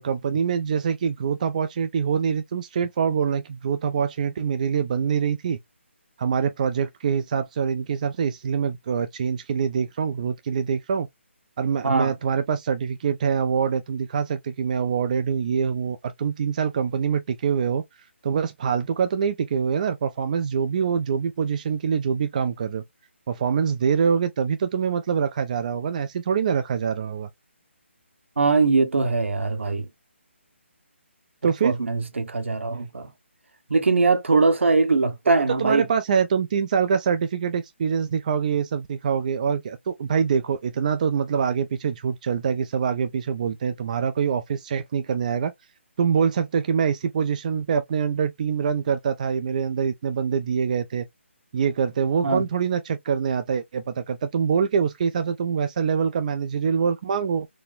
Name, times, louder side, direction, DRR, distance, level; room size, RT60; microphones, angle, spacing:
voice 1, 0.0-5.6 6.2-11.1 11.6-17.8 18.2-22.8 23.3-27.3 31.4-31.7 35.6-45.5 46.0-51.1 51.5-57.5, right 6 dB, 35° right, 0.4 m, -24 dB
voice 2, 28.4-29.9 31.6-33.1 33.7-35.9 52.2-52.4, right 3 dB, 70° right, 0.9 m, -21 dB
4.0 x 2.1 x 2.4 m
figure-of-eight pair, 150°, 7 cm